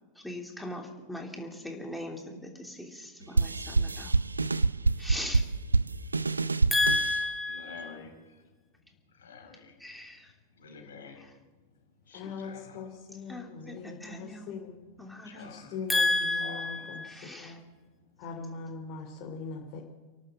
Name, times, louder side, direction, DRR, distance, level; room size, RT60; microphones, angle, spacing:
voice 1, 0.2-4.1 5.0-5.4 6.7-8.0 9.8-10.3 11.2-11.3 13.3-14.5 15.0-15.5 15.9-17.6, left 2 dB, ahead, 1 dB, 3.3 m, -33 dB
sound 1, 3.4-7.2, right 3 dB, 80° right, 0.5 m, -26 dB
voice 2, 7.5-8.1 9.2-9.7 10.6-11.2 12.1-12.8 15.2-15.7 16.4-16.5, left 5 dB, 65° left, 3 dB, 4.7 m, -48 dB
voice 3, 12.1-14.8 15.4-16.0 16.6-17.0 17.4-17.6 18.2-19.8, left 5 dB, 40° left, -1 dB, 3.2 m, -41 dB
30.0 x 12.0 x 7.7 m, 1.3 s
figure-of-eight pair, 90°, 0 cm